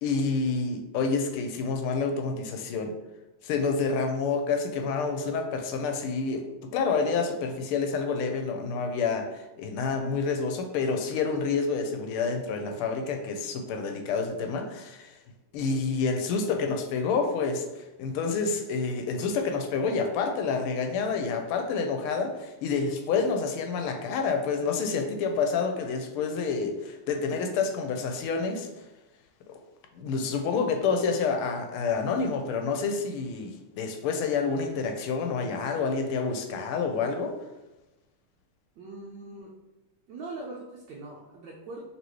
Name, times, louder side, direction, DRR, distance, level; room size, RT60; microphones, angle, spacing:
voice 1, 0.0-3.0 3.4-15.2 15.5-28.8 29.5-29.6 29.9-37.4, left 4 dB, 90° left, 5 dB, 1.5 m, -28 dB
voice 2, 38.8-39.5 40.1-41.8, right 2 dB, 70° right, -2 dB, 1.1 m, -41 dB
4.0 x 3.3 x 3.0 m, 1.0 s
omnidirectional pair, 2.3 m